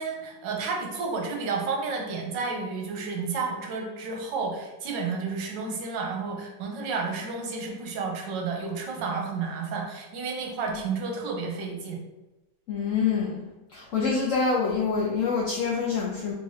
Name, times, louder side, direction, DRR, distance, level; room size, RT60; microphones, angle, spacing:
voice 1, 0.0-12.0, right 4 dB, 75° right, 1 dB, 1.3 m, -31 dB
voice 2, 12.7-13.4 13.7-16.3, left 5 dB, 80° left, -3 dB, 0.7 m, -26 dB
3.4 x 3.3 x 2.6 m, 1.0 s
omnidirectional pair, 2.0 m